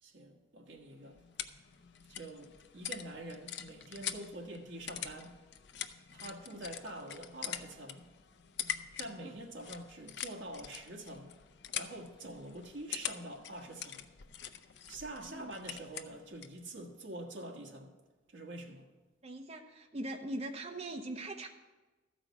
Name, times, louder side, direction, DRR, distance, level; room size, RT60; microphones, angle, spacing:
voice 1, 0.0-1.2 2.1-5.4 6.1-8.1 9.0-11.4 11.7-14.1 14.9-17.9 18.3-18.9, right 1 dB, 65° right, 1.4 m, -46 dB
sound 1, 0.8-16.6, left 9 dB, 60° left, 0.5 m, -44 dB
voice 2, 19.2-21.5, right 1 dB, 35° right, 0.8 m, -41 dB
13.0 x 5.1 x 7.2 m
head